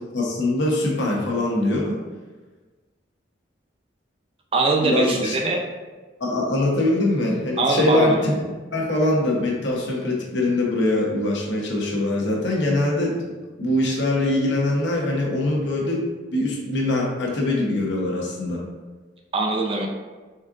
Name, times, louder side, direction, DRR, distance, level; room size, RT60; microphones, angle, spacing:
voice 1, 0.1-2.0 4.8-5.3 6.2-8.4 8.7-13.3 13.6-16.0 16.3-18.6, left 1 dB, 75° left, -2 dB, 1.0 m, -23 dB
voice 2, 4.5-5.6 7.6-8.2 19.3-19.9, right 2 dB, 30° right, 0 dB, 0.4 m, -21 dB
4.3 x 3.6 x 2.5 m, 1.3 s
head